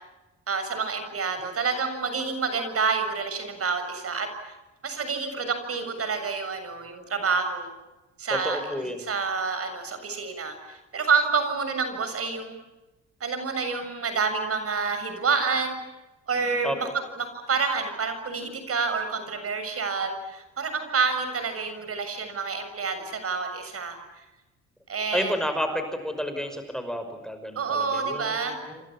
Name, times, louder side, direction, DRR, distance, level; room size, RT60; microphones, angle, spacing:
voice 1, 0.5-4.5 4.8-7.7 8.2-8.6 9.0-12.6 13.2-15.8 16.3-16.9 17.2-24.0 24.9-25.3 27.6-28.6, right 5 dB, 50° right, 8 dB, 7.2 m, -28 dB
voice 2, 8.3-9.1 16.6-16.9 25.1-28.8, equal, ahead, 7 dB, 5.7 m, -31 dB
29.5 x 26.5 x 7.3 m, 1.1 s
cardioid pair, 90°, 30 cm